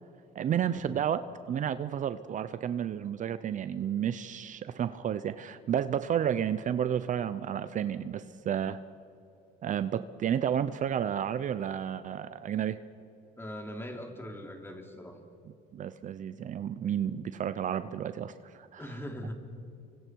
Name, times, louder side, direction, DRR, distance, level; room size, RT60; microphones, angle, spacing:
voice 1, 0.3-8.8 9.6-12.8 15.7-18.8, right 9 dB, 50° right, 13 dB, 0.7 m, -31 dB
voice 2, 13.4-15.2 18.8-19.3, equal, 15° left, 3 dB, 3.1 m, -41 dB
30.0 x 24.5 x 4.7 m, 2.6 s
cardioid pair, 110°, 17 cm